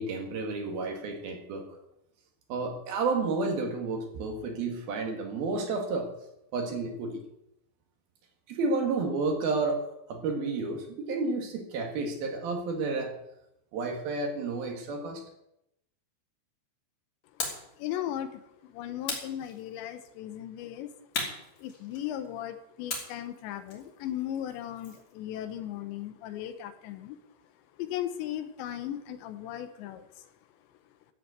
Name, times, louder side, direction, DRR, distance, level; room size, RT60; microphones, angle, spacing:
voice 1, 0.0-1.7 2.5-6.1 6.5-7.2 8.5-13.1 13.7-15.2, right 3 dB, 60° right, 3 dB, 3.2 m, -31 dB
sound 1, 17.4-17.7 19.0-20.0 21.1-22.3 22.9-25.1, left 4 dB, 40° left, 3.9 m, -37 dB
voice 2, 17.7-21.1 21.6-27.2 27.7-30.3 30.7-30.8, left 11 dB, 80° left, 10 dB, 3.1 m, -37 dB
14.0 x 7.5 x 8.1 m, 0.83 s
omnidirectional pair, 5.3 m